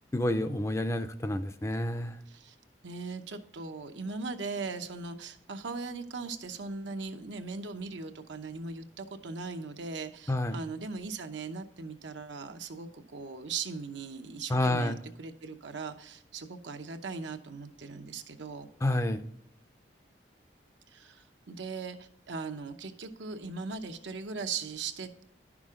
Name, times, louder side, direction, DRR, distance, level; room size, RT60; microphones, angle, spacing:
voice 1, 0.1-2.2 10.3-10.6 14.5-15.0 18.8-19.2, left 1 dB, 15° left, 9 dB, 0.4 m, -29 dB
voice 2, 2.8-18.7 20.9-25.1, right 4 dB, 80° right, 7 dB, 0.8 m, -39 dB
10.5 x 6.1 x 3.7 m, 0.75 s
head